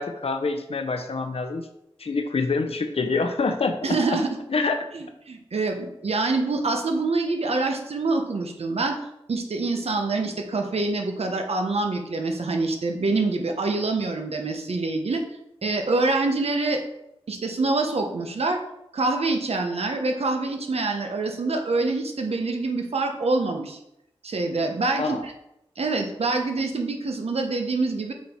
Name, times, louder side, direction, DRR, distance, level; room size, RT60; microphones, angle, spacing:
voice 1, 0.0-1.7 2.0-3.8 4.5-4.8 25.0-25.2, left 4 dB, 75° left, 6 dB, 0.7 m, -26 dB
voice 2, 3.8-4.3 4.9-9.0 9.3-15.2 15.6-16.8 17.3-18.6 18.9-23.8 24.2-25.3 25.8-28.1, right 3 dB, 85° right, 4 dB, 1.0 m, -25 dB
7.2 x 4.5 x 4.4 m, 0.81 s
wide cardioid pair, 85°, 10 cm